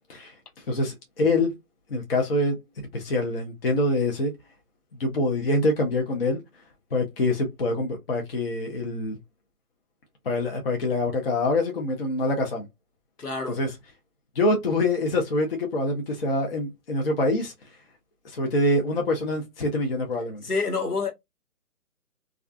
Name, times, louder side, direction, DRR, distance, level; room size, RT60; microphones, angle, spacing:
voice 1, 0.7-1.5 1.9-2.6 2.9-4.3 4.9-6.4 6.9-9.2 10.3-12.7 13.5-13.7 14.4-17.5 18.2-20.4, left 2 dB, 40° left, 0.6 m, -25 dB
voice 2, 13.2-13.6 20.4-21.1, left 4 dB, 80° left, 1.1 m, -27 dB
2.4 x 2.2 x 2.4 m
figure-of-eight pair, 145°, 46 cm